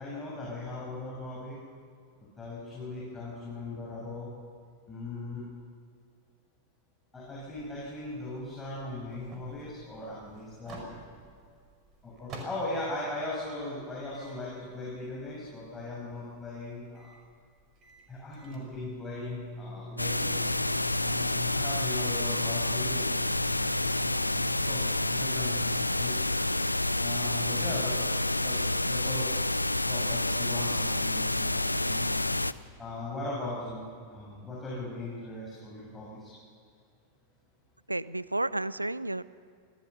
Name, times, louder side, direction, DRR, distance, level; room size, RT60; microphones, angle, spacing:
voice 1, 0.0-1.6 2.4-4.3 4.9-5.4 7.1-10.8 12.0-17.1 18.1-20.4 21.0-24.3 24.6-26.3 27.0-28.1 28.4-29.4 29.8-32.2 32.8-36.3, left 2 dB, 15° left, -6 dB, 6.7 m, -39 dB
sound 1, 7.2-12.8 13.2-25.9, equal, 30° right, 5.3 m, -47 dB
sound 2, 20.0-32.5, left 2 dB, 85° left, 0.5 m, -29 dB
voice 2, 37.9-39.2, right 2 dB, 85° right, 19 dB, 0.5 m, -31 dB
25.5 x 17.0 x 6.9 m, 2.2 s
figure-of-eight pair, 90°, 0 cm